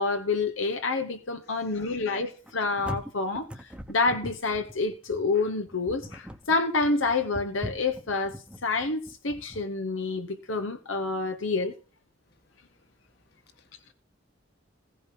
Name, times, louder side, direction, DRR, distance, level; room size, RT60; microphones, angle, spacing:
voice 1, 0.0-8.3 8.6-11.7, left 3 dB, 90° left, 1.2 m, -28 dB
voice 2, 1.5-2.0 13.6-13.9, left 3 dB, 55° left, 1.7 m, -52 dB
sound 1, 2.5-9.6, equal, 5° right, 1.0 m, -41 dB
15.5 x 5.4 x 5.9 m
head